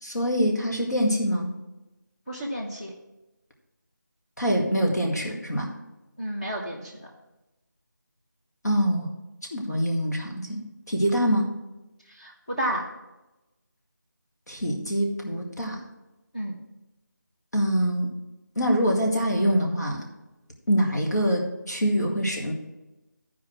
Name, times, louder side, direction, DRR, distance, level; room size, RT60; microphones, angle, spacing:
voice 1, 0.0-1.5 4.4-5.7 8.6-9.1 9.5-11.5 14.5-15.8 17.5-18.1 18.6-20.0 20.7-22.5, equal, 60° left, 1 dB, 1.8 m, -25 dB
voice 2, 2.3-2.9 6.2-6.9 12.1-12.9 16.3-16.6, right 1 dB, 25° left, -5 dB, 1.1 m, -31 dB
13.0 x 4.7 x 6.1 m, 1.0 s
figure-of-eight pair, 180°, 10 cm